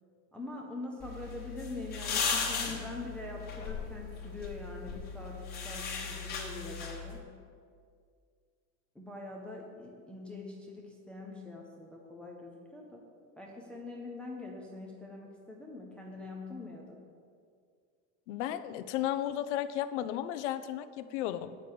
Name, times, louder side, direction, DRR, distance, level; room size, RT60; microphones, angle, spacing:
voice 1, 0.3-7.3 8.9-13.1 13.4-17.0, left 2 dB, 5° left, -2 dB, 0.4 m, -44 dB
sound 1, 1.0-7.2, left 5 dB, 25° left, 1.2 m, -37 dB
voice 2, 18.3-21.6, left 12 dB, 70° left, 13 dB, 0.7 m, -34 dB
8.4 x 6.5 x 7.8 m, 2.1 s
supercardioid pair, 180°, 36 cm